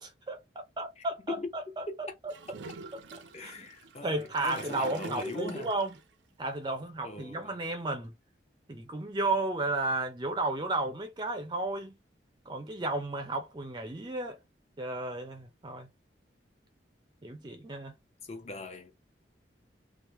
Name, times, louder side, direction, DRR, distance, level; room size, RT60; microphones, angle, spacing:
voice 1, 0.0-2.3 3.4-3.7 4.0-5.9 6.4-8.1 8.7-11.9 12.5-14.4 14.8-15.9 17.2-17.9, right 2 dB, 25° right, 0.4 m, -33 dB
voice 2, 1.0-1.5 1.9-2.0 3.3-5.7 7.0-7.6 18.2-18.9, left 2 dB, 35° left, 0.6 m, -40 dB
Gurgling / Toilet flush, 2.3-6.0, right 3 dB, 80° right, 0.5 m, -46 dB
3.0 x 2.0 x 3.0 m
head